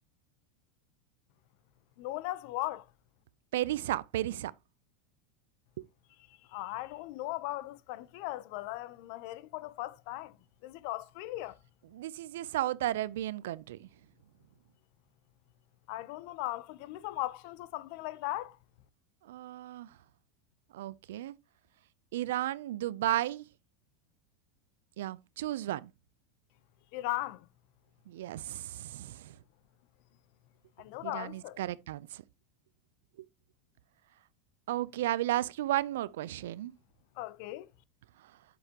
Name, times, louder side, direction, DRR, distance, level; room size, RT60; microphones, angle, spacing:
voice 1, 2.0-2.9 6.3-10.4 10.6-11.6 15.9-18.6 26.9-27.5 30.8-31.6 37.2-37.7, left 17 dB, 60° left, 0.6 m, -38 dB
voice 2, 3.5-4.5 11.9-13.9 19.3-19.9 20.7-21.3 22.1-23.4 25.0-25.9 28.1-29.4 31.0-32.2 34.7-36.7, right 14 dB, 85° right, 0.4 m, -34 dB
8.0 x 7.9 x 2.9 m
supercardioid pair, 140°, 0 cm